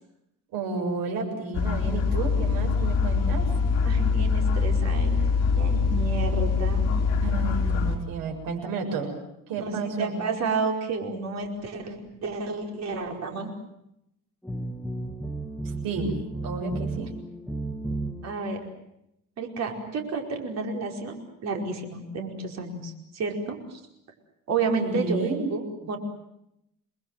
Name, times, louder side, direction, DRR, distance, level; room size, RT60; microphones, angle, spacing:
voice 1, 0.5-3.5 7.2-9.1 9.5-10.2 15.8-16.1 16.4-17.1 24.7-25.5, right 4 dB, 85° right, 2 dB, 7.2 m, -31 dB
sound 1, 1.5-8.0, left 5 dB, 50° left, 4.7 m, -24 dB
voice 2, 3.8-5.2 5.6-6.9 9.6-13.5 18.2-18.7 19.4-23.8 24.5-26.0, right 4 dB, 50° right, 3 dB, 5.0 m, -31 dB
sound 2, 14.4-18.5, right 2 dB, ahead, 1.4 m, -33 dB
29.0 x 21.0 x 7.6 m, 0.81 s
cardioid pair, 150°, 33 cm